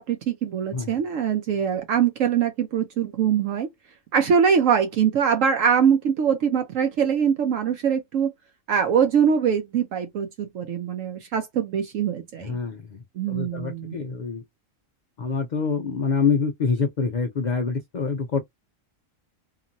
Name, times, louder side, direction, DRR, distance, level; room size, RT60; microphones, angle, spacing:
voice 1, 0.0-3.7 4.1-8.3 8.7-12.6 13.2-14.0, right 7 dB, 75° right, 0.9 m, -23 dB
voice 2, 12.4-13.0 13.3-14.4 15.2-18.4, left 5 dB, 75° left, 0.4 m, -26 dB
2.9 x 2.5 x 2.5 m
omnidirectional pair, 1.4 m